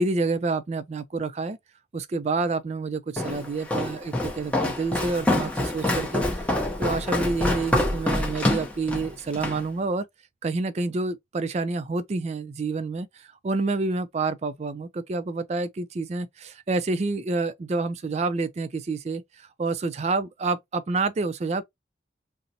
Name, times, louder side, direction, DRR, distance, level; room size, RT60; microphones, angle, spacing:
voice 1, 0.0-1.6 1.9-6.5 6.8-10.1 10.4-21.6, right 3 dB, 35° right, 0.3 m, -28 dB
Walk footsteps, 3.2-9.6, left 1 dB, 5° left, 0.7 m, -26 dB
3.9 x 2.0 x 2.6 m
head